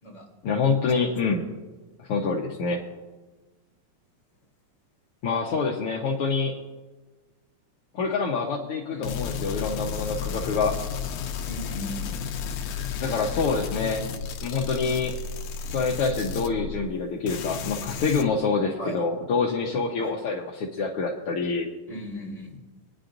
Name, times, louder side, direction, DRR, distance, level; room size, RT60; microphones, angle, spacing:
voice 1, 0.4-1.5 2.0-2.8 5.2-6.6 7.9-10.8 13.0-14.1 14.4-15.2 15.6-21.7, left 4 dB, 60° left, -2 dB, 1.6 m, -26 dB
sound 1, 9.0-17.0 17.3-18.2, left 6 dB, 80° left, 2.2 m, -33 dB
voice 2, 11.4-12.1 18.8-19.0 20.0-20.2 21.9-22.6, equal, 30° left, -4 dB, 3.7 m, -37 dB
23.0 x 9.8 x 2.6 m, 1.2 s
omnidirectional pair, 3.5 m